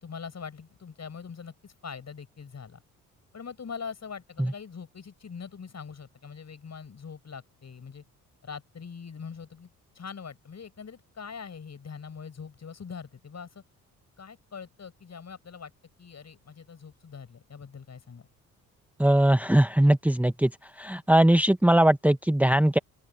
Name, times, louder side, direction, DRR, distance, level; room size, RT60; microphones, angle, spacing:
voice 1, 0.0-2.8 3.3-8.0 8.4-9.7 9.9-13.6 14.2-15.7 16.0-18.3, left 6 dB, 35° left, 7.5 m, -42 dB
voice 2, 19.0-20.5 20.8-22.8, right 1 dB, 5° right, 1.4 m, -20 dB
open air
figure-of-eight pair, 50°, 43 cm